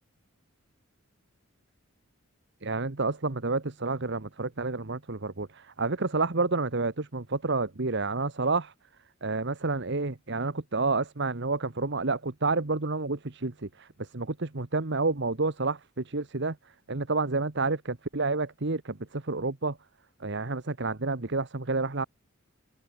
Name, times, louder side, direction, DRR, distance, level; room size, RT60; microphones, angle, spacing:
voice 1, 2.6-8.7 9.2-16.6 16.9-19.8 20.2-22.1, right 3 dB, 55° right, 1.3 m, -29 dB
open air
head